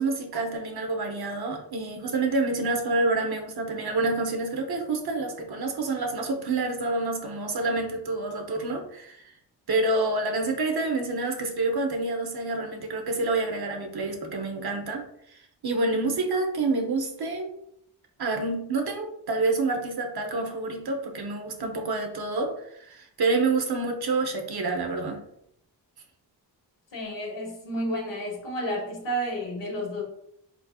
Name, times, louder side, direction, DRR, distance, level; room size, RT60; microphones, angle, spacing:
voice 1, 0.0-9.3 9.7-15.0 15.6-17.5 18.2-25.2, right 3 dB, 60° right, 4 dB, 1.0 m, -28 dB
voice 2, 26.9-30.0, equal, 75° left, -1 dB, 1.7 m, -31 dB
4.2 x 4.1 x 2.4 m, 0.73 s
cardioid pair, 60°, 43 cm